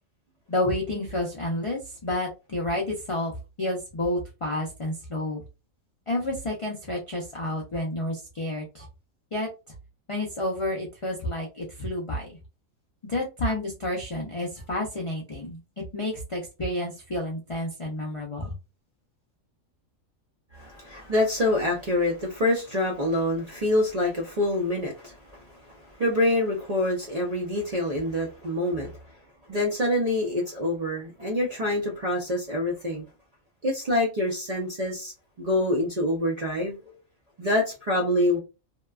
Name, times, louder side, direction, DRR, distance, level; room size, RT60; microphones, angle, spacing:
voice 1, 0.5-5.4 6.1-8.9 9.3-9.5 10.1-12.3 13.0-18.5, left 1 dB, 55° left, 0.3 m, -30 dB
voice 2, 20.5-28.9 29.5-33.1 33.6-35.1 35.4-36.9 37.4-38.4, left 1 dB, 50° right, 0.4 m, -26 dB
2.8 x 2.2 x 2.3 m
omnidirectional pair, 1.4 m